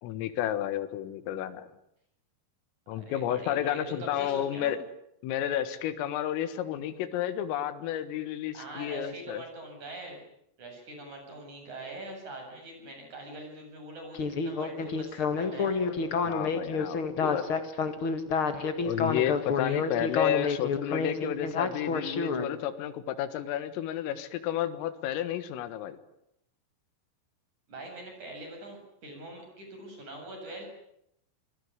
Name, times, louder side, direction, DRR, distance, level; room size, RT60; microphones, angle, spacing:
voice 1, 0.0-1.7 2.9-4.8 5.2-9.4 16.2-17.4 18.8-26.0, left 11 dB, 80° left, 10 dB, 4.2 m, -31 dB
voice 2, 3.0-4.8 8.5-10.2 10.6-15.9 19.6-19.8 27.7-30.6, right 2 dB, 35° right, 3 dB, 8.8 m, -43 dB
Speech synthesizer, 14.1-22.5, left 5 dB, 65° left, 1.3 m, -29 dB
27.5 x 21.5 x 9.7 m, 0.77 s
omnidirectional pair, 5.9 m